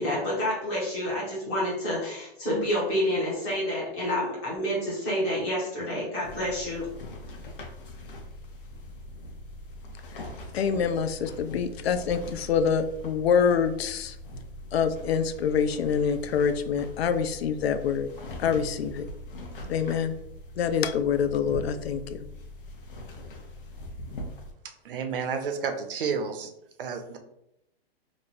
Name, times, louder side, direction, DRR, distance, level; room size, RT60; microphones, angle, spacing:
voice 1, 0.0-6.9, equal, 10° left, -6 dB, 0.6 m, -28 dB
sound 1, 6.2-24.5, left 1 dB, 55° left, 0.8 m, -42 dB
voice 2, 10.5-14.2 14.7-18.1 18.4-19.0 19.7-20.1 20.6-22.2, left 7 dB, 75° left, 9 dB, 0.5 m, -26 dB
voice 3, 24.8-26.5 26.8-27.2, right 6 dB, 60° right, 6 dB, 0.6 m, -31 dB
3.0 x 2.0 x 3.9 m, 0.81 s
hypercardioid pair, 180°, 31 cm